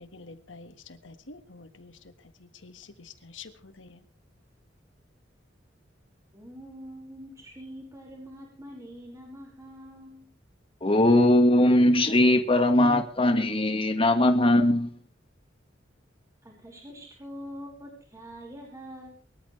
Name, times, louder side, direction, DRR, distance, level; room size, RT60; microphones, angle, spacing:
voice 1, 0.0-4.0, left 4 dB, 90° left, 9 dB, 1.7 m, -48 dB
voice 2, 6.3-10.3 16.4-19.1, equal, 15° right, -1 dB, 5.1 m, -44 dB
voice 3, 10.8-15.0, left 1 dB, 30° left, 7 dB, 1.7 m, -20 dB
23.5 x 13.5 x 3.3 m, 0.41 s
head